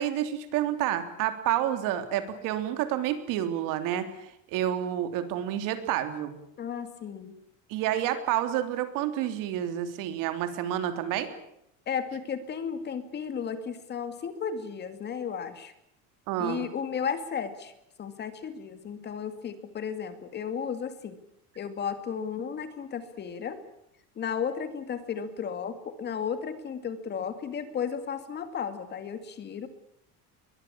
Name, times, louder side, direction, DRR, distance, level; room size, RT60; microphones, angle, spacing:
voice 1, 0.0-6.4 7.7-11.3 16.3-16.7, right 11 dB, 65° right, 9 dB, 3.4 m, -29 dB
voice 2, 6.6-7.3 11.9-15.7 16.4-17.7 18.0-21.2 21.6-23.6 24.2-29.7, left 7 dB, 30° left, 10 dB, 2.3 m, -34 dB
22.5 x 21.5 x 8.6 m, 0.77 s
cardioid pair, 170°, 35 cm